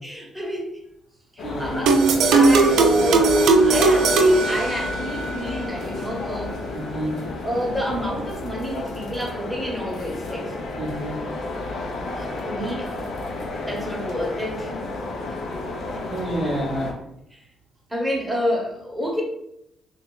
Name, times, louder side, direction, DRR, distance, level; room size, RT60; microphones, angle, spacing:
voice 1, 0.0-0.7 1.3-1.9 2.3-6.6 7.4-10.5 12.2-13.4 13.7-14.8 17.3-17.4 17.9-19.2, equal, 5° right, -2 dB, 1.0 m, -29 dB
sound 1, 1.4-16.9, left 2 dB, 70° left, 0.6 m, -32 dB
voice 2, 1.4-2.1 6.7-7.2 10.8-11.2 16.1-17.0, right 1 dB, 30° right, -4 dB, 0.8 m, -29 dB
sound 2, 1.9-5.3, right 3 dB, 80° right, 0.4 m, -17 dB
2.7 x 2.4 x 3.9 m, 0.79 s
cardioid pair, 90°, 0 cm